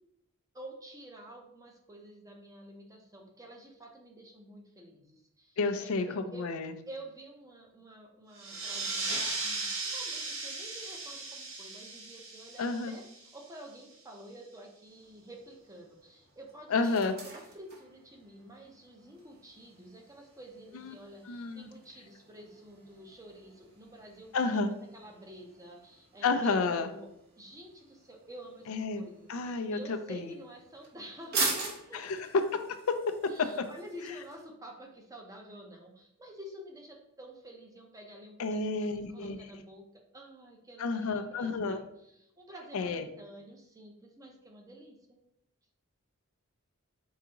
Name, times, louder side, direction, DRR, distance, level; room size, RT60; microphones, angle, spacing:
voice 1, 0.5-6.5 6.9-27.1 27.4-32.0 33.3-39.9 40.1-45.2, right 1 dB, 15° right, 1 dB, 0.7 m, -50 dB
voice 2, 5.6-6.1 6.4-6.7 12.6-12.9 16.7-17.1 21.3-21.7 24.3-24.7 26.2-26.9 28.7-29.0 29.3-29.8 30.1-30.3 31.9-32.2 38.4-39.4 40.8-41.8 42.7-43.0, left 4 dB, 75° left, 8 dB, 0.4 m, -30 dB
sound 1, 8.3-13.6, right 3 dB, 85° right, 1.0 m, -37 dB
sound 2, 14.9-34.4, right 3 dB, 50° right, 0.9 m, -43 dB
4.7 x 3.5 x 2.9 m, 0.76 s
head